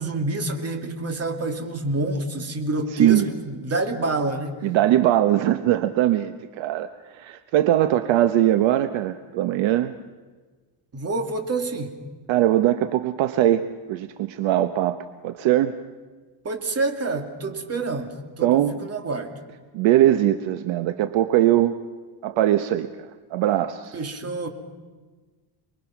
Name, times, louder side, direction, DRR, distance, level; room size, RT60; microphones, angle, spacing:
voice 1, 0.0-4.6 10.9-11.9 16.4-19.3 23.9-24.5, right 2 dB, 30° right, 5 dB, 2.7 m, -27 dB
voice 2, 2.9-3.3 4.6-6.9 7.1-9.9 12.3-15.7 18.4-18.8 19.7-21.7 22.2-24.0, right 13 dB, 65° right, 10 dB, 1.1 m, -21 dB
28.5 x 21.5 x 6.0 m, 1.3 s
cardioid pair, 115°, 50 cm